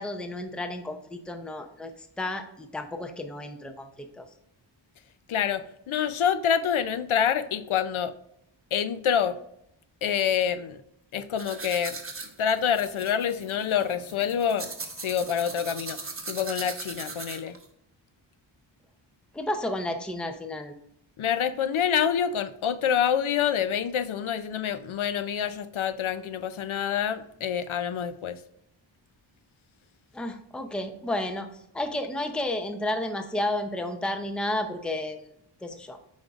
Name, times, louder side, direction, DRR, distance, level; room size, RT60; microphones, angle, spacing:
voice 1, 0.0-1.9 2.2-4.3 19.3-20.7 30.1-31.5 31.7-35.2 35.6-36.0, left 1 dB, ahead, 6 dB, 0.6 m, -32 dB
voice 2, 5.3-8.1 8.7-9.4 10.0-10.8 11.1-12.0 12.4-14.7 15.0-17.6 21.2-28.4, left 8 dB, 85° left, 13 dB, 0.6 m, -27 dB
sound 1, 11.4-17.6, right 3 dB, 25° right, 1.1 m, -39 dB
8.8 x 5.3 x 2.4 m, 0.74 s
wide cardioid pair, 100°, 48 cm